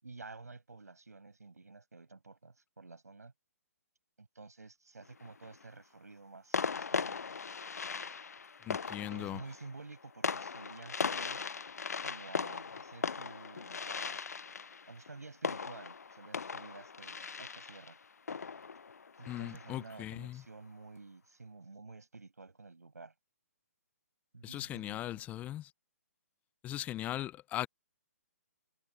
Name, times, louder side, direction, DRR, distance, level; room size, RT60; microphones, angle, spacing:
voice 1, 0.0-3.3 4.2-7.2 9.0-11.5 12.0-14.2 14.9-18.0 19.2-23.1 24.3-25.2, right 3 dB, 85° right, 6.6 m, -51 dB
sound 1, 5.0-5.6 6.5-19.9, left 5 dB, 85° left, 0.4 m, -39 dB
voice 2, 8.6-9.4 19.3-20.4 24.4-25.7 26.6-27.7, left 13 dB, 15° left, 0.5 m, -39 dB
figure-of-eight pair, 135°, 8 cm